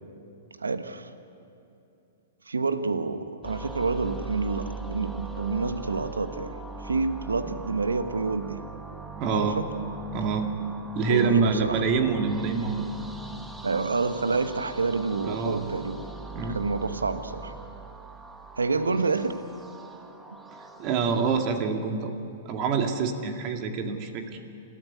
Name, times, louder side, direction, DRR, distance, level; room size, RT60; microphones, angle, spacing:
voice 1, 0.6-1.1 2.5-6.6 6.8-8.6 9.3-9.7 11.1-11.8 13.6-16.1 16.4-17.5 18.6-19.4 20.3-20.4, right 4 dB, 85° right, 10 dB, 1.3 m, -28 dB
sound 1, 3.4-21.7, right 4 dB, 10° right, 1.4 m, -41 dB
voice 2, 9.1-9.6 10.1-10.6 10.9-12.9 15.2-15.6 16.3-16.6 20.8-22.1 22.5-24.2, right 5 dB, 40° right, 4 dB, 2.3 m, -26 dB
29.0 x 13.5 x 9.7 m, 2.7 s
figure-of-eight pair, 110°, 0 cm